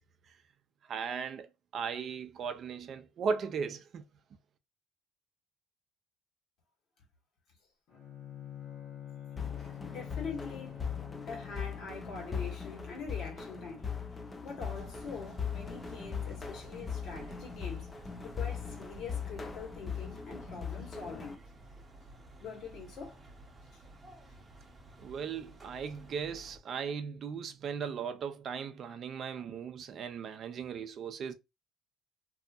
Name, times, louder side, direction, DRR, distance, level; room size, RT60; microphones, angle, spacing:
voice 1, 0.9-4.0 25.0-31.3, right 6 dB, 50° right, 0.4 m, -37 dB
Bowed string instrument, 7.9-12.0, left 10 dB, 80° left, 1.2 m, -46 dB
sound 1, 9.4-21.3, left 6 dB, 20° left, 0.4 m, -40 dB
voice 2, 9.6-10.8 11.3-13.9 14.4-17.9 18.2-21.4 22.4-23.2 23.7-23.8, left 5 dB, 65° left, 1.4 m, -44 dB
sound 2, 14.6-26.6, right 2 dB, 15° right, 0.7 m, -53 dB
2.7 x 2.5 x 2.3 m
cardioid pair, 130°, 0 cm